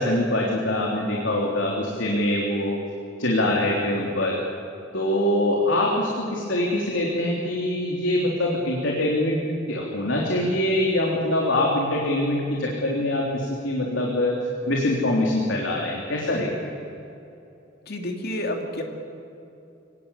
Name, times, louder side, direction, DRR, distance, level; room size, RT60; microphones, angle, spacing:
voice 1, 0.0-2.8 3.2-4.4 4.9-9.4 9.7-14.4 14.7-16.8, left 1 dB, 80° left, -2 dB, 3.3 m, -24 dB
voice 2, 17.8-18.8, left 1 dB, 55° left, 3 dB, 2.8 m, -29 dB
25.0 x 19.0 x 8.3 m, 2.8 s
head